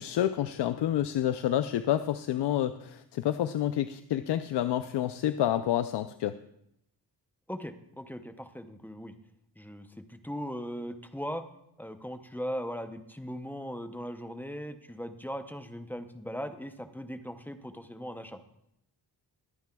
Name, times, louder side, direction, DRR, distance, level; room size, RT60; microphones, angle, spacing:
voice 1, 0.0-6.3, left 11 dB, 85° left, 10 dB, 0.5 m, -29 dB
voice 2, 7.5-9.1 9.6-11.4 11.8-18.4, equal, 5° left, 9 dB, 0.6 m, -39 dB
22.0 x 9.4 x 2.3 m, 0.77 s
wide cardioid pair, 120°, 40 cm